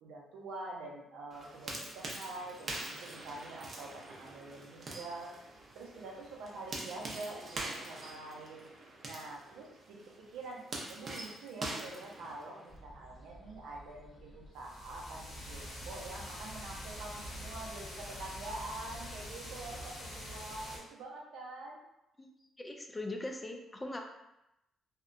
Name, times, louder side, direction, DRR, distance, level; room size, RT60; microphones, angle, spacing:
voice 1, 0.0-5.3 5.7-8.7 9.0-21.8, right 2 dB, 90° right, -2 dB, 0.6 m, -46 dB
sound 1, 1.3-12.8, right 2 dB, 45° right, 0.6 m, -45 dB
sound 2, 12.7-17.7, right 1 dB, 35° left, 0.8 m, -54 dB
sound 3, 14.6-20.8, equal, 65° left, 1.0 m, -45 dB
voice 2, 22.6-24.0, left 2 dB, 20° left, 3 dB, 0.4 m, -40 dB
2.7 x 2.1 x 2.5 m, 0.88 s
cardioid pair, 90°, 0 cm